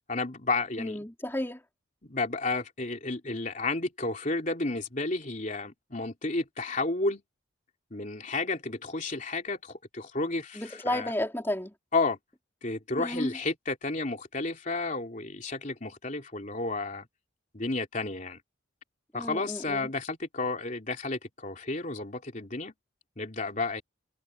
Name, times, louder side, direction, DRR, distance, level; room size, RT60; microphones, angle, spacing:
voice 1, 0.1-1.0 2.0-7.2 7.9-11.1 11.9-12.2 12.6-17.1 17.5-18.4 19.1-22.7 23.2-23.8, left 3 dB, 40° left, 3.3 m, -32 dB
voice 2, 0.8-1.6 10.5-11.7 13.0-13.4 19.1-19.9, left 1 dB, 10° left, 4.1 m, -33 dB
head